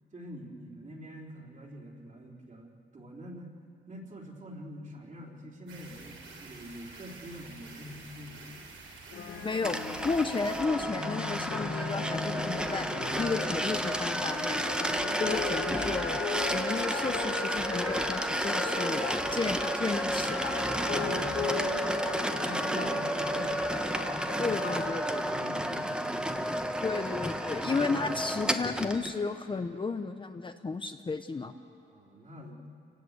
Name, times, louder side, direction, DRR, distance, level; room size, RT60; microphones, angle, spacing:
voice 1, 0.1-3.5 3.9-8.8 10.2-10.3 15.1-15.4 19.3-19.6 20.8-24.6 25.2-26.7 27.5-28.1 31.9-32.6, equal, 35° right, -1 dB, 3.6 m, -45 dB
sound 1, 5.7-10.6, right 3 dB, 85° right, 5.2 m, -49 dB
sound 2, 9.1-25.1, left 5 dB, 75° left, 3.4 m, -38 dB
voice 2, 9.4-9.8 10.0-12.9 13.2-14.8 15.2-16.2 16.5-20.6 24.4-25.3 26.8-31.5, left 4 dB, 25° left, 7 dB, 0.8 m, -33 dB
sound 3, 9.6-29.1, equal, 5° right, 1.1 m, -31 dB
29.0 x 19.0 x 8.1 m, 2.6 s
cardioid pair, 130°, 20 cm